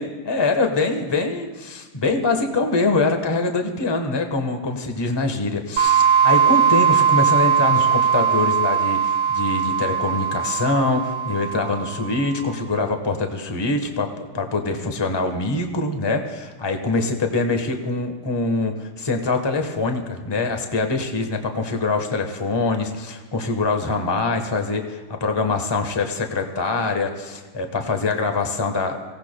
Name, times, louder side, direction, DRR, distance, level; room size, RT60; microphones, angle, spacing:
voice 1, 0.0-29.0, left 3 dB, 20° left, 5 dB, 0.7 m, -24 dB
sound 1, 5.8-12.3, right 7 dB, 80° right, 0.7 m, -19 dB
25.0 x 17.0 x 2.2 m, 1.3 s
omnidirectional pair, 2.4 m